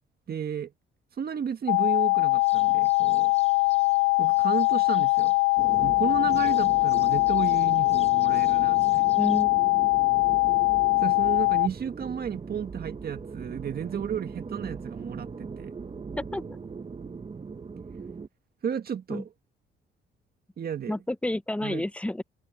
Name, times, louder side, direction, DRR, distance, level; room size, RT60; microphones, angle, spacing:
voice 1, 0.3-0.7 1.2-3.3 4.2-5.4 5.8-9.2 11.0-15.7 18.6-19.3 20.6-20.9 21.6-21.8, right 8 dB, 50° right, 1.9 m, -33 dB
sound 1, 1.7-11.7, left 27 dB, 85° left, 0.4 m, -22 dB
sound 2, 2.3-9.4, left 4 dB, 35° left, 4.4 m, -54 dB
sound 3, 5.6-18.3, right 5 dB, 30° right, 1.2 m, -39 dB
voice 2, 9.2-9.6 16.2-16.4 19.1-19.2 20.9-22.2, left 1 dB, 5° left, 0.7 m, -30 dB
cardioid pair, 90°, 20 cm